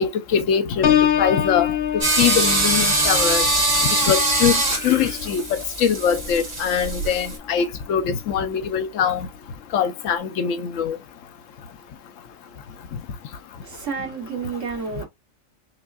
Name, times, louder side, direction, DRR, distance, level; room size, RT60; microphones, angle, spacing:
voice 1, 0.0-1.7 1.9-3.5 4.1-9.3 9.7-11.0, left 7 dB, 80° left, 1.0 m, -22 dB
Piano, 0.8-6.5 6.9-7.3, left 9 dB, 55° left, 0.8 m, -26 dB
sound 1, 2.0-7.4, right 2 dB, 80° right, 2.3 m, -22 dB
voice 2, 13.6-15.1, right 5 dB, 65° right, 2.2 m, -30 dB
5.4 x 2.3 x 2.3 m
omnidirectional pair, 1.4 m